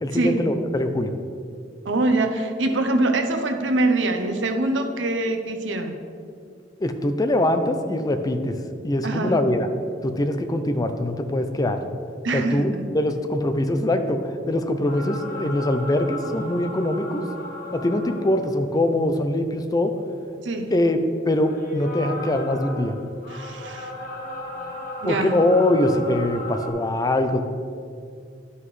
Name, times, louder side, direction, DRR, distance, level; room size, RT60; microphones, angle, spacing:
voice 1, 0.0-1.1 6.8-8.6 8.8-9.7 10.0-11.8 12.3-17.3 17.7-19.9 20.7-21.0 21.3-23.0 25.0-27.4, left 1 dB, 20° left, 7 dB, 0.4 m, -23 dB
voice 2, 1.8-6.0 9.0-9.4 12.2-12.7 20.4-20.7 23.3-23.9 25.0-25.3, right 2 dB, 75° right, 5 dB, 0.7 m, -24 dB
sound 1, 14.9-18.9 19.4-19.5 21.4-26.7, left 1 dB, 50° left, 1.2 m, -36 dB
11.0 x 5.6 x 3.2 m, 2.3 s
head